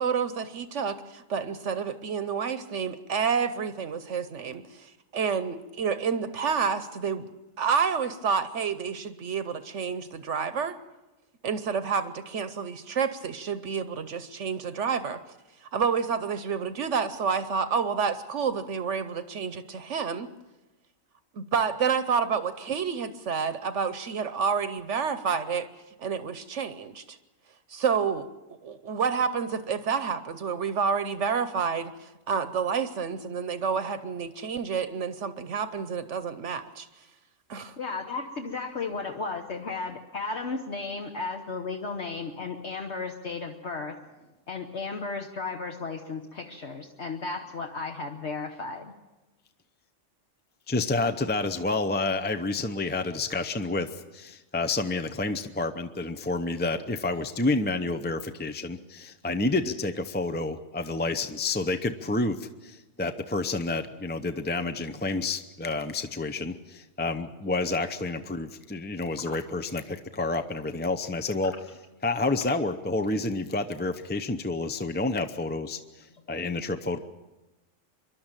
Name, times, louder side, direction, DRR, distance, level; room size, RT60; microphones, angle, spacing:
voice 1, 0.0-10.8 11.4-15.2 15.6-20.3 21.3-25.7 26.0-27.2 27.7-28.3 28.6-37.1 37.5-37.8, right 6 dB, 65° right, 12 dB, 1.1 m, -29 dB
voice 2, 37.8-44.0 44.5-48.9 69.2-69.4 76.3-76.4, left 4 dB, 60° left, 3 dB, 1.4 m, -34 dB
voice 3, 50.7-71.5 72.0-77.0, left 2 dB, 15° left, 7 dB, 0.4 m, -29 dB
26.0 x 11.5 x 8.9 m, 1.1 s
omnidirectional pair, 1.4 m